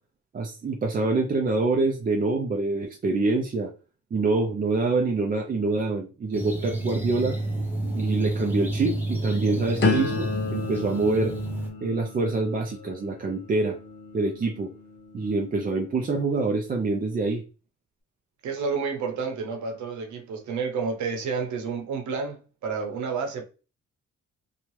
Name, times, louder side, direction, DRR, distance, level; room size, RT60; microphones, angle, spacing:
voice 1, 0.3-3.7 4.1-7.4 7.9-11.3 11.8-13.8 14.1-14.7 15.1-17.4, right 3 dB, 30° right, 0.5 m, -26 dB
sound 1, 6.3-11.7, right 1 dB, 5° right, 0.9 m, -30 dB
voice 2, 9.3-9.7 18.4-23.4, right 5 dB, 70° right, 0.9 m, -30 dB
sound 2, 9.8-15.7 16.2-16.6, left 3 dB, 35° left, 0.8 m, -32 dB
2.8 x 2.3 x 3.1 m
cardioid pair, 90°, 30 cm